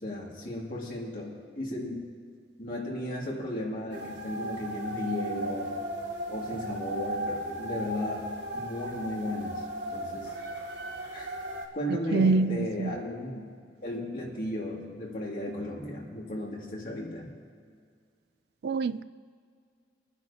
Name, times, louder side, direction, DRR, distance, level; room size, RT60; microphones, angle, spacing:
voice 1, 0.0-2.0 2.6-5.8 6.3-8.3 8.5-9.6 9.9-10.3 11.1-11.3 11.7-13.4 13.8-17.3, left 1 dB, 50° left, 2.6 m, -35 dB
sound 1, 3.9-11.6, right 1 dB, 75° right, 2.0 m, -36 dB
voice 2, 12.1-12.9 18.6-19.0, right 4 dB, 60° right, 0.3 m, -25 dB
24.5 x 9.9 x 2.9 m
head